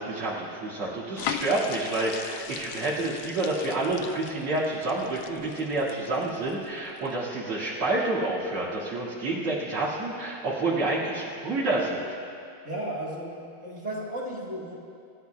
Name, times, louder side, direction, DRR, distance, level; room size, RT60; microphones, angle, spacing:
voice 1, 0.0-12.0, right 2 dB, 90° right, -8 dB, 3.1 m, -28 dB
sound 1, 1.2-6.5 7.0-7.1, left 8 dB, 80° left, 1.4 m, -38 dB
voice 2, 12.6-14.7, right 1 dB, 35° right, -5 dB, 1.9 m, -34 dB
26.5 x 13.5 x 2.3 m, 2.5 s
omnidirectional pair, 2.3 m